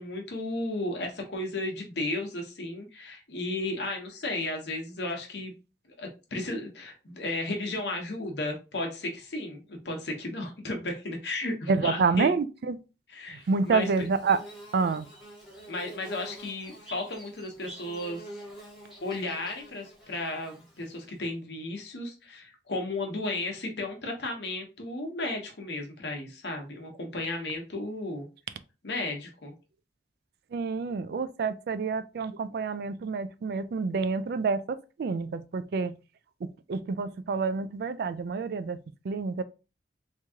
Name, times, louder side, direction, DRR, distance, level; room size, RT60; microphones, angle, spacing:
voice 1, 0.0-5.5 6.0-12.4 13.1-13.9 15.7-18.2 19.0-28.3 28.8-29.5, left 2 dB, 70° left, 1.0 m, -34 dB
voice 2, 11.7-12.8 13.5-14.4 14.7-15.1 30.5-35.9 36.4-38.8 39.0-39.4, right 4 dB, 60° right, 0.3 m, -28 dB
Bird / Buzz, 13.5-21.2, right 1 dB, ahead, 1.6 m, -47 dB
3.5 x 3.0 x 2.8 m
head